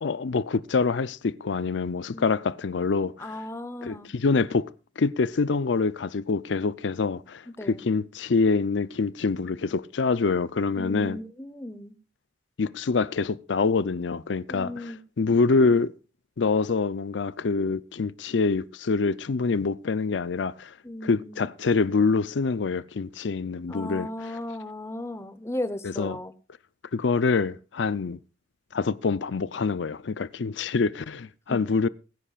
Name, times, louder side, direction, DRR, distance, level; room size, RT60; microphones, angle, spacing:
voice 1, 0.0-3.4 3.8-11.2 12.6-15.9 16.4-20.7 21.0-24.4 25.8-26.2 26.9-28.2 28.7-31.9, left 4 dB, 80° left, 0.5 m, -26 dB
voice 2, 3.2-4.1 7.6-7.8 10.8-12.0 14.5-15.0 20.8-21.4 23.7-26.3 31.5-31.6, left 1 dB, 15° left, 0.9 m, -35 dB
21.0 x 10.0 x 2.4 m
head